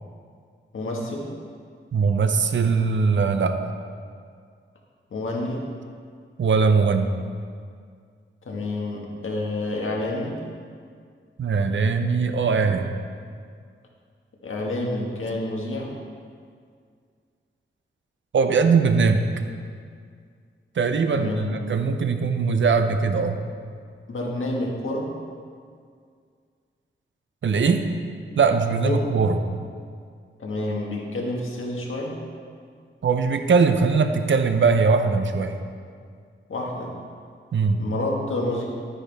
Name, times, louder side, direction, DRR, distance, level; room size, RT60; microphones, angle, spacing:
voice 1, 0.7-1.3 5.1-5.6 8.4-10.4 14.4-15.9 21.1-21.5 24.1-25.1 28.8-29.1 30.4-32.1 36.5-36.9 37.8-38.7, left 2 dB, 80° left, -2 dB, 1.7 m, -28 dB
voice 2, 1.9-3.7 6.4-7.1 11.4-12.9 18.3-19.3 20.8-23.4 27.4-27.9 28.4-29.4 33.0-35.6 37.5-37.8, right 5 dB, 70° right, 7 dB, 0.7 m, -21 dB
11.0 x 9.7 x 3.5 m, 2.1 s
wide cardioid pair, 145°, 21 cm